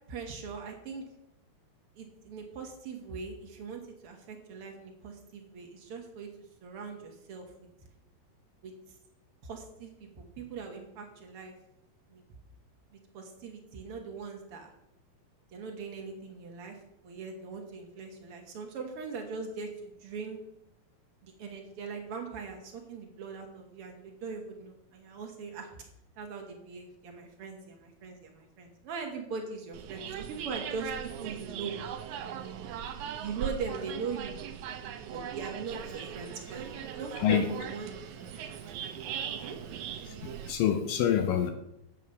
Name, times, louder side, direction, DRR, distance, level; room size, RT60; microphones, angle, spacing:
voice 1, 0.1-1.0 1.9-6.3 6.6-7.7 8.6-8.7 9.4-11.5 12.1-12.2 12.9-14.7 15.5-20.4 21.2-25.7 26.2-30.9 31.2-31.8 33.2-34.4 35.1-37.9 39.4-39.6, right 5 dB, 70° right, 2 dB, 1.3 m, -41 dB
sound 1, 29.7-40.5, right 9 dB, 90° right, 1.7 m, -39 dB
voice 2, 40.0-41.5, left 9 dB, 80° left, 7 dB, 2.1 m, -27 dB
8.3 x 7.5 x 6.5 m, 0.83 s
omnidirectional pair, 4.4 m